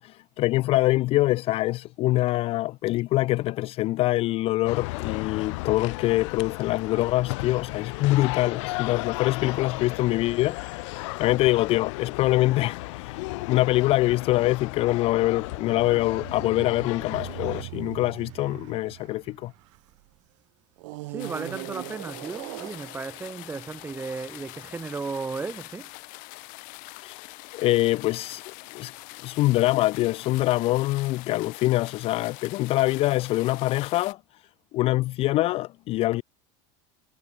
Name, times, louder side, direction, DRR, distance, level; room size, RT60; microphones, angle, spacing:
voice 1, 0.0-10.6 10.8-13.2 13.5-19.5 27.0-27.3 27.5-28.4 28.7-28.9 29.2-34.2 34.7-36.2, left 17 dB, 35° left, 0.4 m, -24 dB
sound 1, 4.7-17.6, left 24 dB, 70° left, 4.1 m, -35 dB
sound 2, 15.3-20.0 20.8-24.2, right 23 dB, 75° right, 3.3 m, -41 dB
voice 2, 21.0-25.9, right 4 dB, 15° right, 3.3 m, -35 dB
sound 3, 21.2-34.1, left 29 dB, 55° left, 2.7 m, -44 dB
supercardioid pair, 145°, 16 cm